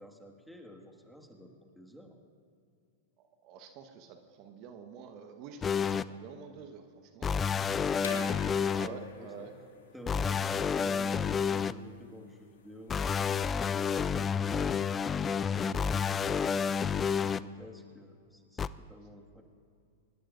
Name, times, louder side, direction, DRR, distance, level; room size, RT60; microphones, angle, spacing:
voice 1, 0.0-2.2 8.5-9.5 9.9-14.9 15.5-19.4, equal, ahead, 1 dB, 1.9 m, -49 dB
voice 2, 3.4-7.3 8.7-9.5, right 6 dB, 45° right, 6 dB, 1.3 m, -48 dB
sound 1, 5.6-6.0 7.2-8.9 10.1-11.7 12.9-17.4 18.6-18.7, left 6 dB, 20° left, 0.4 m, -29 dB
sound 2, 8.0-13.6, left 5 dB, 75° left, 2.3 m, -47 dB
24.5 x 20.0 x 2.6 m, 2.4 s
hypercardioid pair, 100°, 0 cm